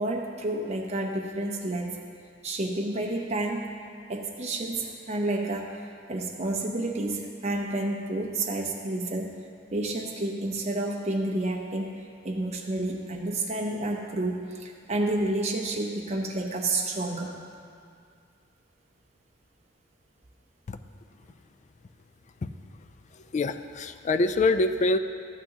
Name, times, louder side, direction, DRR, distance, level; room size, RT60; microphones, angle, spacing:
voice 1, 0.0-2.0 2.4-3.8 4.1-5.8 6.1-9.3 9.7-17.3, right 2 dB, 35° right, -1 dB, 0.8 m, -30 dB
voice 2, 23.1-25.0, left 2 dB, 35° left, 10 dB, 0.4 m, -25 dB
13.0 x 9.0 x 2.9 m, 2.2 s
head